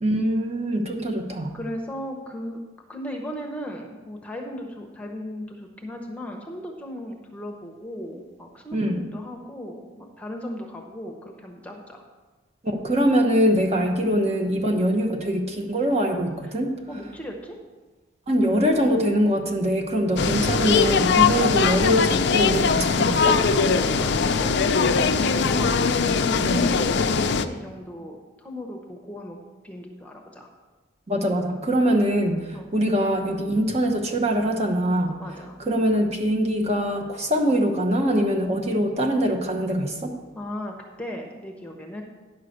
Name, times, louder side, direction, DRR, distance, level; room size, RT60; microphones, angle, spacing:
voice 1, 0.0-1.6 8.7-9.0 12.6-16.7 18.3-23.4 26.4-26.6 31.1-35.1 35.6-40.1, equal, 30° right, 3 dB, 0.9 m, -23 dB
voice 2, 1.5-2.6 2.9-12.0 14.7-14.8 16.4-16.5 16.9-17.6 23.5-29.4 29.6-30.5 32.5-32.7 35.2-35.6 40.3-42.0, left 1 dB, 5° left, 1 dB, 0.9 m, -36 dB
sound 1, 20.2-27.5, left 5 dB, 55° left, 0.5 m, -21 dB
10.0 x 5.7 x 6.5 m, 1.3 s
head